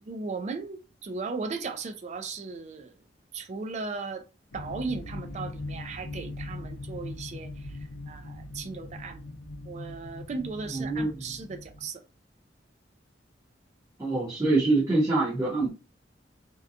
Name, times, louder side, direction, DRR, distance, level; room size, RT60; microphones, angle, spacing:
voice 1, 0.0-2.9 3.3-4.2 4.5-7.8 8.1-9.3 9.7-12.0, right 4 dB, 40° right, 0.3 m, -36 dB
sound 1, 4.5-11.9, left 2 dB, 65° left, 0.5 m, -40 dB
voice 2, 10.7-11.3 14.0-15.7, right 2 dB, 20° right, 0.8 m, -25 dB
2.7 x 2.2 x 2.4 m
head